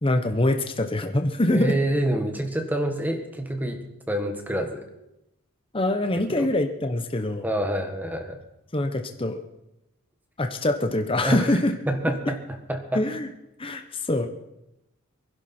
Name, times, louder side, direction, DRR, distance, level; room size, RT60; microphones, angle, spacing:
voice 1, 0.0-1.8 5.7-7.5 8.7-9.4 10.4-11.7 12.9-13.3 13.6-14.3, left 1 dB, 25° left, 6 dB, 0.9 m, -24 dB
voice 2, 1.5-4.9 6.4-6.5 7.4-8.4 11.2-11.6 11.9-12.4 12.7-13.0, right 1 dB, 10° right, 5 dB, 1.5 m, -27 dB
24.5 x 11.0 x 4.4 m, 0.89 s
head